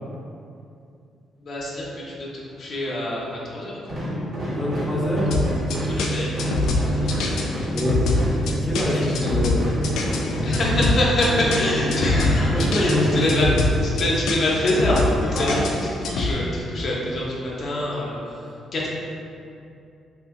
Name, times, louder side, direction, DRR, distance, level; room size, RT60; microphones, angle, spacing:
voice 1, 1.4-4.0 5.7-7.4 8.9-9.3 10.4-13.5 13.8-15.6 16.0-18.9, left 1 dB, 50° left, -4 dB, 0.6 m, -25 dB
sound 1, 3.8-14.0, equal, 55° right, 1.3 m, -28 dB
voice 2, 4.5-5.4 7.7-8.0 8.4-9.6 10.1-10.4 12.5-13.5 15.3-15.6, equal, 5° left, -6 dB, 0.6 m, -26 dB
sound 2, 5.3-16.3, left 3 dB, 85° left, 0.3 m, -24 dB
2.7 x 2.5 x 3.6 m, 2.6 s
cardioid pair, 90°, 0 cm